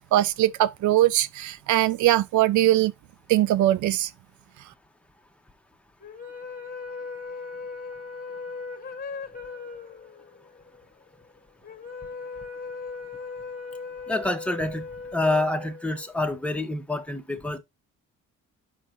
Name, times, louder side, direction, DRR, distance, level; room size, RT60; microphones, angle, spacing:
voice 1, 0.1-2.9 3.3-4.1, right 14 dB, 75° right, 0.5 m, -21 dB
sound 1, 6.0-16.4, left 4 dB, 30° left, 1.7 m, -38 dB
voice 2, 14.1-14.8 15.1-17.6, left 2 dB, 5° left, 1.4 m, -27 dB
8.5 x 6.4 x 2.9 m
cardioid pair, 90°, 30 cm